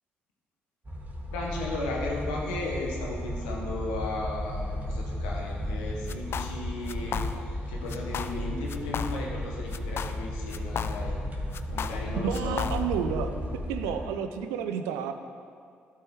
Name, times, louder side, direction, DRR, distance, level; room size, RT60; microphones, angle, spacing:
sound 1, 0.8-14.0, left 1 dB, 30° right, 1.8 m, -34 dB
voice 1, 1.3-11.2 11.7-12.7 13.1-13.2 13.7-13.9, left 2 dB, 85° left, -2 dB, 1.4 m, -35 dB
sound 2, 6.1-6.6 6.9-7.6 7.9-8.4 8.7-9.4 9.7-11.2 11.5-13.0, left 7 dB, 55° left, 0.4 m, -34 dB
voice 2, 12.2-13.3 13.7-15.1, right 7 dB, 85° right, 8 dB, 0.5 m, -30 dB
11.5 x 4.8 x 4.5 m, 2.3 s
hypercardioid pair, 50°, 5 cm